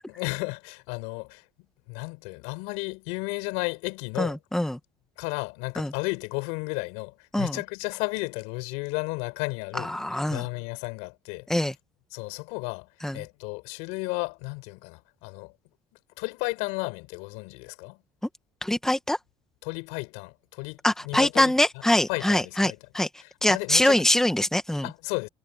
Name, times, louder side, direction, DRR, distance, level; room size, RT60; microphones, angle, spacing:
voice 1, 0.1-1.5 1.9-4.7 5.2-11.5 12.1-15.5 16.2-18.0 19.6-21.5 22.1-22.8 23.2-24.1 24.8-25.3, left 30 dB, 90° left, 6.5 m, -33 dB
voice 2, 4.2-4.8 5.8-5.9 7.3-7.6 9.8-10.4 11.5-11.7 13.0-13.2 18.6-19.2 20.8-23.1 23.4-24.9, left 1 dB, 5° left, 1.7 m, -23 dB
supercardioid pair, 95°, 12 cm